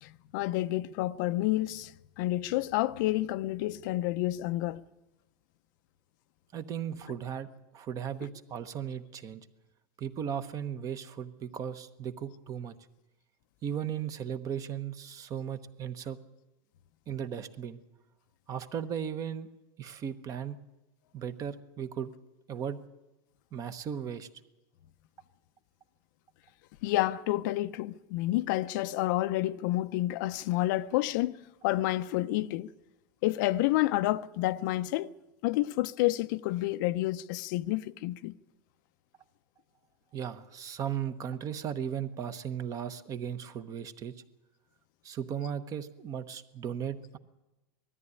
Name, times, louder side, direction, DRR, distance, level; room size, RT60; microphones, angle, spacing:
voice 1, 0.0-4.8 26.8-31.4 31.6-32.7 33.2-35.1 35.4-38.4, left 16 dB, 55° left, 0.6 m, -29 dB
voice 2, 6.5-7.5 7.7-9.5 10.0-12.7 13.6-16.2 17.1-17.8 18.5-19.5 19.8-20.6 21.1-22.1 22.5-22.8 23.5-24.3 40.1-44.1 45.0-47.2, right 8 dB, 30° right, 1.0 m, -36 dB
19.5 x 13.5 x 9.8 m
supercardioid pair, 145°, 12 cm